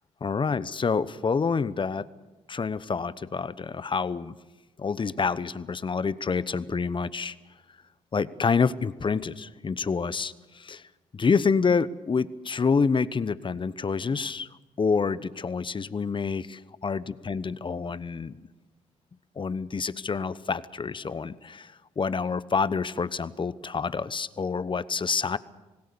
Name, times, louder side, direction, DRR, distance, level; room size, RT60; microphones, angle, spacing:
voice 1, 0.2-2.1 2.5-4.4 4.8-7.3 8.1-10.9 11.1-14.5 14.8-18.4 19.4-25.4, left 5 dB, 35° left, 17 dB, 1.0 m, -27 dB
26.5 x 18.0 x 7.0 m, 1.1 s
supercardioid pair, 55°, 14 cm